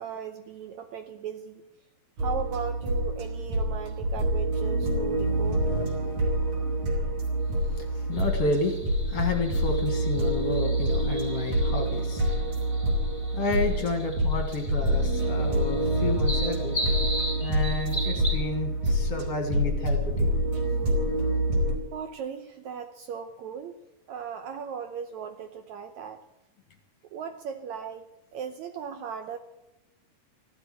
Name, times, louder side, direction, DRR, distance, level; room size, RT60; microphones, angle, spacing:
voice 1, 0.0-1.6 2.2-5.7 21.9-23.8 24.1-26.2 27.1-29.4, right 7 dB, 70° right, 7 dB, 1.8 m, -37 dB
sound 1, 2.2-21.8, right 1 dB, 55° right, 4.1 m, -27 dB
voice 2, 7.6-8.8 9.1-12.5 13.3-16.8 17.4-20.3, left 3 dB, 50° left, 4 dB, 2.3 m, -31 dB
sound 2, 8.1-18.4, equal, 5° right, 3.9 m, -38 dB
15.0 x 12.0 x 7.6 m, 0.90 s
omnidirectional pair, 4.0 m